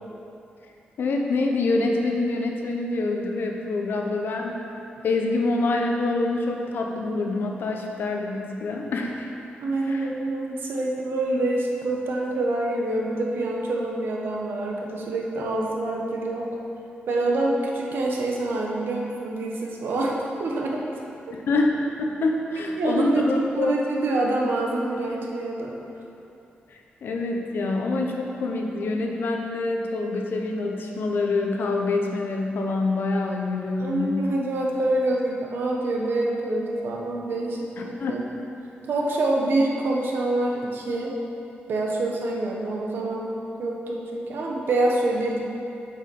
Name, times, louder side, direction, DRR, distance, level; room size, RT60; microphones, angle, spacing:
voice 1, 1.0-4.6 5.0-9.3 9.8-10.1 21.3-23.7 26.7-34.2 37.8-38.2, left 2 dB, 65° left, 1 dB, 1.0 m, -26 dB
voice 2, 9.6-16.5 17.1-20.8 22.8-25.7 33.8-38.2 38.9-41.1 41.7-43.3 43.6-45.4, right 2 dB, 70° right, -1 dB, 1.2 m, -26 dB
7.2 x 6.8 x 5.4 m, 2.8 s
wide cardioid pair, 160°, 4 cm